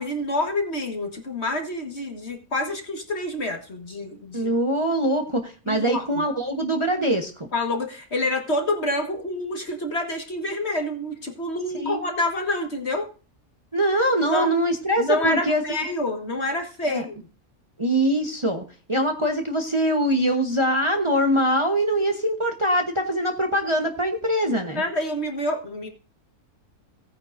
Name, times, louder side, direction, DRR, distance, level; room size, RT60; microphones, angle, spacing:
voice 1, 0.0-4.5 5.7-6.3 7.5-13.1 14.3-14.5 15.0-17.2 24.7-25.9, left 1 dB, 45° left, 3 dB, 1.8 m, -27 dB
voice 2, 4.3-7.5 11.7-12.0 13.7-15.6 16.9-17.0 17.8-24.8, right 1 dB, 20° right, 3 dB, 1.1 m, -23 dB
17.0 x 9.4 x 2.6 m, 0.37 s
omnidirectional pair, 1.6 m